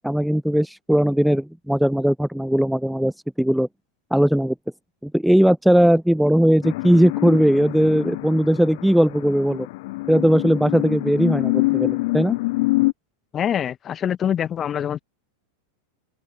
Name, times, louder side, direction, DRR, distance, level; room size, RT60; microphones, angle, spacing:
voice 1, 0.0-3.1 3.4-3.7 4.1-4.5 5.0-9.7 10.1-12.4, equal, ahead, 0.4 m, -18 dB
sound 1, 6.6-12.9, left 21 dB, 50° left, 1.1 m, -25 dB
voice 2, 13.3-15.0, left 9 dB, 25° left, 1.8 m, -24 dB
open air
figure-of-eight pair, 90°, 0 cm